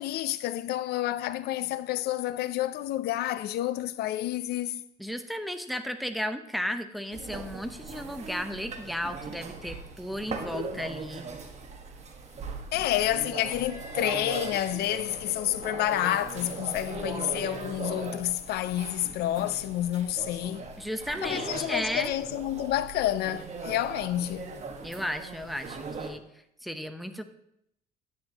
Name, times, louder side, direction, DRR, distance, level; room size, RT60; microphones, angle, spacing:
voice 1, 0.0-4.8 12.7-20.7 21.2-24.5, left 13 dB, 75° left, 0.5 m, -29 dB
voice 2, 5.0-11.2 20.8-22.1 24.8-26.2 26.6-27.2, equal, ahead, 0.8 m, -34 dB
sound 1, 7.1-26.1, right 4 dB, 40° right, 1.4 m, -39 dB
10.0 x 9.6 x 2.9 m
cardioid pair, 110°, 17 cm